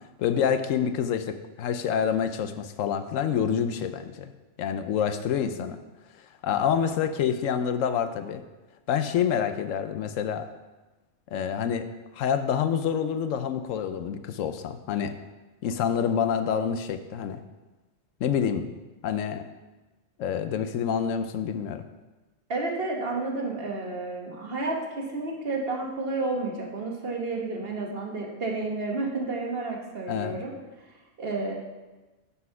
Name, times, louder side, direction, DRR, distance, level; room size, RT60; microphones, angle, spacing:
voice 1, 0.2-4.3 4.6-5.8 6.4-8.4 8.9-10.5 11.3-15.2 15.6-17.4 18.2-18.7 19.0-19.5 20.2-21.9 30.1-30.4, left 8 dB, 80° left, 9 dB, 0.9 m, -27 dB
voice 2, 22.5-30.5 31.2-31.5, right 3 dB, 50° right, 0 dB, 1.4 m, -31 dB
9.6 x 4.2 x 5.6 m, 1.1 s
omnidirectional pair, 1.3 m